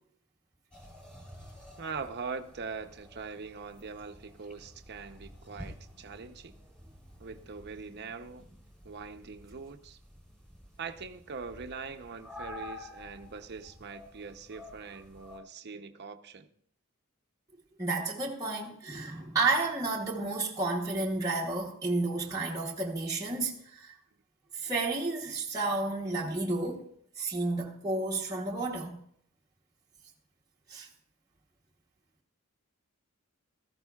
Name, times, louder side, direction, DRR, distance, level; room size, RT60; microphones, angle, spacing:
sound 1, 0.7-15.4, left 1 dB, 5° left, 3.4 m, -50 dB
voice 1, 1.8-6.6 7.2-8.5 8.8-10.0 10.8-16.5, right 5 dB, 50° right, 0.7 m, -42 dB
voice 2, 17.8-23.9 24.5-26.8 27.2-29.0 30.7-30.9, right 3 dB, 15° right, 1.0 m, -31 dB
17.0 x 14.0 x 2.3 m
head